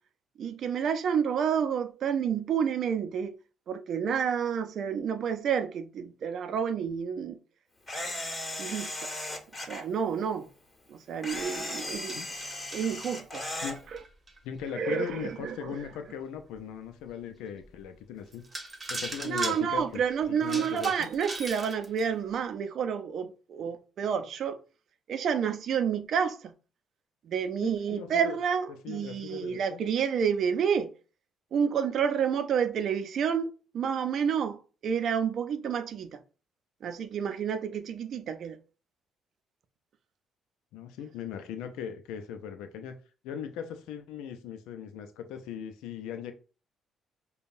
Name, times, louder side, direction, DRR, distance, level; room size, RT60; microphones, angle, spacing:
voice 1, 0.4-3.3 3.7-7.4 8.6-9.1 9.6-10.5 10.9-12.2 12.7-13.4 13.9-14.0 14.7-15.8 19.2-24.6 25.1-26.5 27.3-30.9 31.5-36.2 36.8-38.6, right 7 dB, 60° right, 0.6 m, -29 dB
Camera, 7.9-9.8 11.2-13.8, left 1 dB, 30° left, 1.5 m, -36 dB
sound 1, 11.3-14.7 15.3-15.4 15.9-16.0 16.6-16.7 17.8-17.9 18.3-22.1, right 2 dB, 25° right, 1.2 m, -40 dB
voice 2, 14.4-18.4 18.9-20.0 20.3-20.9 27.6-28.4 28.7-29.8 40.7-43.0 43.2-46.3, left 8 dB, 80° left, 0.5 m, -39 dB
5.1 x 2.2 x 2.6 m
hypercardioid pair, 55°, 0 cm